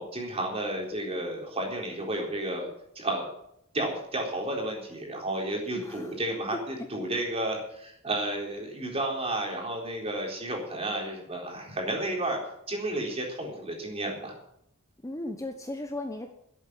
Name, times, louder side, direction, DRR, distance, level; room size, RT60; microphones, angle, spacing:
voice 1, 0.0-2.7 3.0-3.2 3.7-12.4 12.7-14.4, right 1 dB, 30° right, 0 dB, 3.9 m, -32 dB
voice 2, 5.7-6.1 6.5-6.9 15.0-16.3, left 1 dB, 15° left, 4 dB, 1.0 m, -36 dB
12.0 x 8.4 x 9.6 m, 0.75 s
head